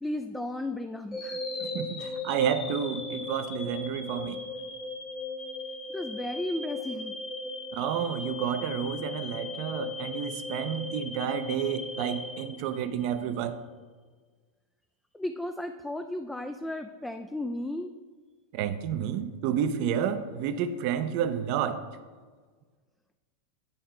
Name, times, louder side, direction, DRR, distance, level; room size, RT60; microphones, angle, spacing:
voice 1, 0.0-1.4 5.9-7.2 15.1-17.9, left 1 dB, 5° left, 0.4 m, -34 dB
sound 1, 1.1-13.2, left 3 dB, 25° left, 1.1 m, -37 dB
voice 2, 1.6-4.4 7.7-13.6 18.5-21.8, right 9 dB, 50° right, 0.6 m, -30 dB
9.6 x 3.6 x 4.5 m
figure-of-eight pair, 90°, 0 cm